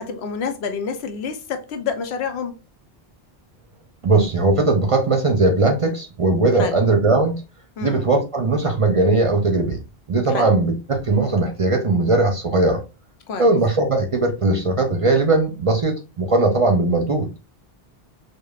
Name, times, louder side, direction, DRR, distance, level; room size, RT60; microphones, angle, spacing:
voice 1, 0.0-2.5 6.6-6.8 7.8-8.1 10.3-10.5 13.3-13.5, left 6 dB, 85° left, 0.9 m, -28 dB
voice 2, 4.0-7.4 7.8-9.8 10.1-12.8 13.4-17.4, right 2 dB, 40° right, 0.5 m, -19 dB
5.1 x 2.1 x 2.3 m
omnidirectional pair, 1.0 m